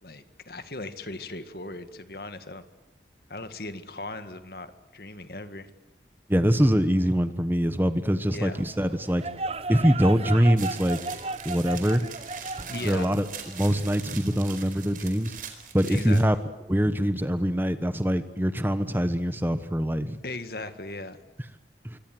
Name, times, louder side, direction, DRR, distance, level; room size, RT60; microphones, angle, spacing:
voice 1, 0.0-2.7 3.3-5.7 8.3-8.7 12.7-13.2 15.9-16.4 20.2-21.2, left 2 dB, 55° left, 10 dB, 2.0 m, -38 dB
voice 2, 6.3-9.2 9.7-11.0 11.4-12.1 12.8-13.3 13.5-15.3 15.7-16.3 16.7-20.2 21.8-22.0, equal, 10° right, 11 dB, 1.2 m, -23 dB
sound 1, 8.5-14.4, right 2 dB, 35° right, 0.9 m, -35 dB
sound 2, 10.6-16.2, right 8 dB, 50° right, 4.4 m, -42 dB
27.0 x 24.0 x 7.9 m, 0.98 s
head